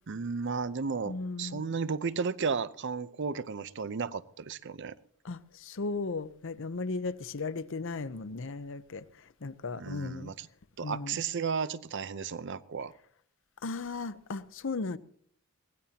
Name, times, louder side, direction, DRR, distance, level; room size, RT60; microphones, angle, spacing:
voice 1, 0.1-4.9 9.8-10.5 10.8-12.9, right 5 dB, 55° right, 0.6 m, -34 dB
voice 2, 1.1-1.6 5.2-9.1 9.4-10.3 10.8-11.2 13.6-15.0, left 3 dB, 60° left, 0.6 m, -36 dB
23.0 x 17.5 x 2.9 m
head